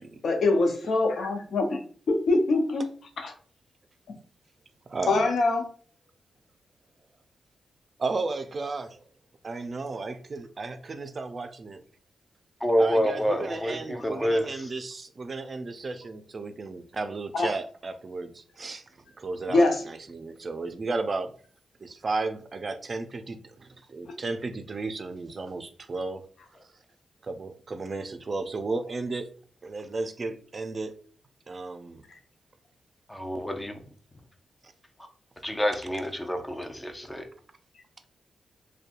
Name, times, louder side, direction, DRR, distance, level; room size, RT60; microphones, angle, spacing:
voice 1, 0.2-1.8 2.1-2.9 3.2-3.3 5.1-5.6 17.3-17.5 19.5-19.8, left 2 dB, 70° left, 4 dB, 0.6 m, -23 dB
voice 2, 4.9-5.3 8.0-9.0 9.4-11.8 12.8-18.8 19.2-21.3 21.8-26.3 27.2-29.3 29.6-30.9 31.5-32.0, right 3 dB, 50° right, 9 dB, 0.4 m, -34 dB
voice 3, 12.6-14.7 33.1-33.8 35.0-35.1 35.4-37.3, equal, 15° left, 5 dB, 0.5 m, -28 dB
2.6 x 2.2 x 2.5 m, 0.43 s
supercardioid pair, 50°, 0 cm